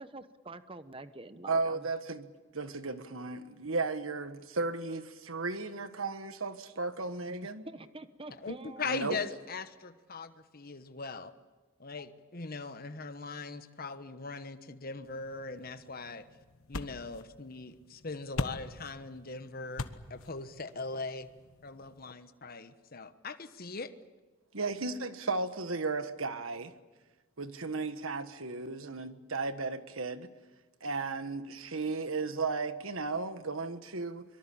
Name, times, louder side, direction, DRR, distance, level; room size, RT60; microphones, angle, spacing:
voice 1, 0.0-1.9 7.4-9.0, right 2 dB, 25° right, 1.0 m, -46 dB
voice 2, 1.5-7.6 8.8-9.2 24.5-26.7 27.4-30.3 30.8-34.2, right 3 dB, 75° right, 1.5 m, -35 dB
voice 3, 8.4-11.3 11.8-16.3 16.7-21.3 21.6-23.9, left 4 dB, 45° left, 1.2 m, -40 dB
sound 1, 15.0-22.1, left 2 dB, 80° left, 1.3 m, -43 dB
24.0 x 23.5 x 8.6 m
head